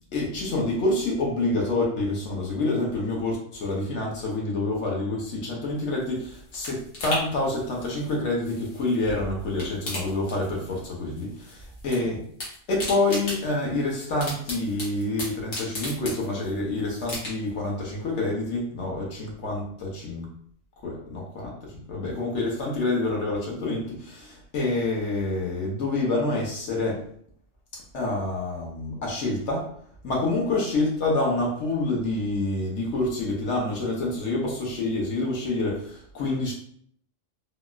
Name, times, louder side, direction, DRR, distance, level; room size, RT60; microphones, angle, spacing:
voice 1, 0.1-12.2 12.7-20.3 20.8-27.0 27.7-29.7 30.0-36.5, left 2 dB, 70° left, -2 dB, 1.1 m, -27 dB
sound 1, 5.8-9.1 9.4-10.9 11.2-12.0 12.2-16.6 17.0-17.7 18.1-18.2, left 1 dB, 90° left, 1.4 m, -36 dB
3.4 x 2.1 x 2.4 m, 0.62 s
omnidirectional pair, 1.3 m